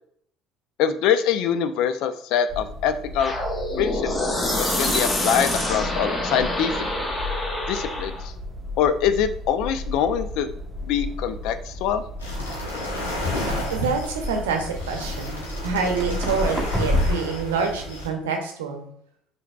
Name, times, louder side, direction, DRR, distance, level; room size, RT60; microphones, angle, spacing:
voice 1, 0.8-3.3 3.8-6.9 7.7-8.3 8.8-10.5 10.9-12.0, left 8 dB, 60° left, 11 dB, 0.3 m, -24 dB
sound 1, 2.5-17.2, left 2 dB, 20° right, 0.8 m, -32 dB
sound 2, 3.2-8.2, left 1 dB, 20° left, 0.8 m, -26 dB
sound 3, 12.2-18.1, left 1 dB, 80° left, 0.9 m, -32 dB
voice 2, 13.7-18.9, right 5 dB, 75° right, 3 dB, 0.7 m, -27 dB
5.6 x 2.7 x 2.2 m, 0.67 s
figure-of-eight pair, 55°, 0 cm